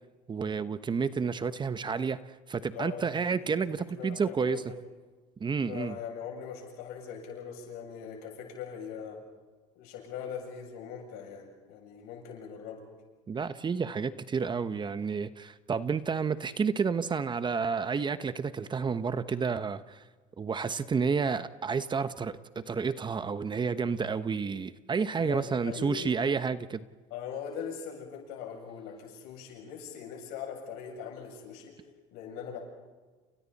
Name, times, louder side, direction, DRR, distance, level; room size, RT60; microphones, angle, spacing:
voice 1, 0.3-4.6 5.4-6.0 13.3-20.0 20.4-26.9, right 5 dB, 30° right, 12 dB, 1.1 m, -30 dB
voice 2, 2.6-4.8 5.6-9.2 9.7-12.9 25.2-26.4 27.1-31.7 32.1-32.6, left 7 dB, 75° left, 1 dB, 7.6 m, -41 dB
30.0 x 29.5 x 4.3 m, 1.3 s
supercardioid pair, 95°, 16 cm